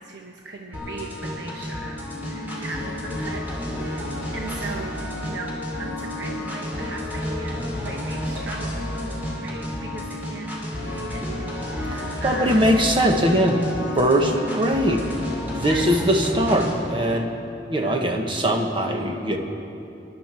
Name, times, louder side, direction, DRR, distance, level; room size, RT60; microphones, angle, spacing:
voice 1, 0.0-3.6 3.8-8.8 9.4-10.5 10.9-12.6 15.6-15.9 17.0-17.2 17.8-18.0, right 2 dB, 75° right, 0 dB, 1.0 m, -38 dB
sound 1, 0.7-16.7, left 1 dB, 10° right, 3.3 m, -31 dB
voice 2, 11.9-13.6 13.9-15.1 15.5-17.3 17.7-19.4, equal, 30° right, 3 dB, 1.2 m, -21 dB
23.0 x 11.0 x 4.4 m, 2.7 s
head